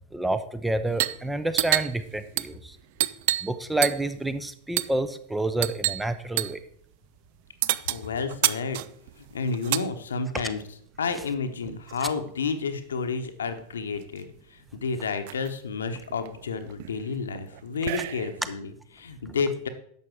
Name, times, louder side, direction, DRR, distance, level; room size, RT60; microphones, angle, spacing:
voice 1, 0.1-2.8 3.4-6.6 10.3-10.4 12.0-12.1, right 2 dB, 5° right, 12 dB, 0.7 m, -28 dB
sound 1, 0.9-1.2 1.5-3.6 3.8-4.2 4.8-5.0 5.6-6.1 6.4-6.6 7.6-9.9 10.9-12.0 13.2-13.3 13.6-14.2 14.7-14.8 15.0-15.5 16.0-18.5, right 16 dB, 50° right, 0.4 m, -29 dB
voice 2, 7.9-8.8 9.2-10.6 11.0-14.2 14.5-19.7, left 5 dB, 70° left, 8 dB, 1.0 m, -30 dB
11.0 x 7.1 x 4.6 m, 0.65 s
figure-of-eight pair, 90°, 0 cm